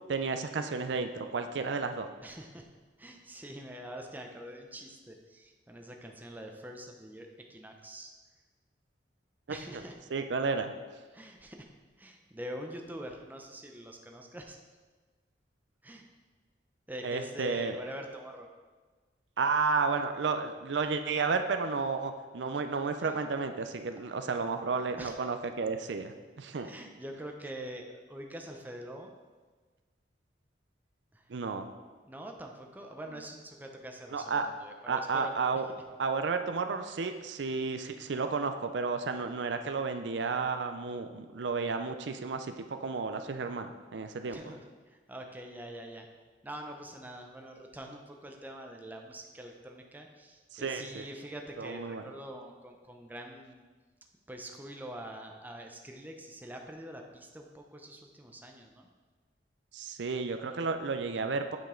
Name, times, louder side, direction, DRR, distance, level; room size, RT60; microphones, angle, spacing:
voice 1, 0.1-2.1 9.7-9.8 10.1-10.7 17.0-17.8 19.4-26.7 31.3-31.7 34.1-34.5 34.9-35.7 36.0-44.4 50.5-51.1 51.6-52.0 59.7-61.6, right 4 dB, 90° right, 7 dB, 0.5 m, -32 dB
voice 2, 2.2-2.7 3.0-8.1 9.5-9.9 11.1-11.7 12.0-14.6 15.8-16.1 16.9-18.5 23.0-23.2 24.0-24.1 25.0-25.2 26.6-29.1 31.1-31.3 32.1-35.3 44.3-46.1 46.4-53.6 54.3-58.9, right 1 dB, 10° right, 2 dB, 0.6 m, -45 dB
8.3 x 5.2 x 3.8 m, 1.4 s
head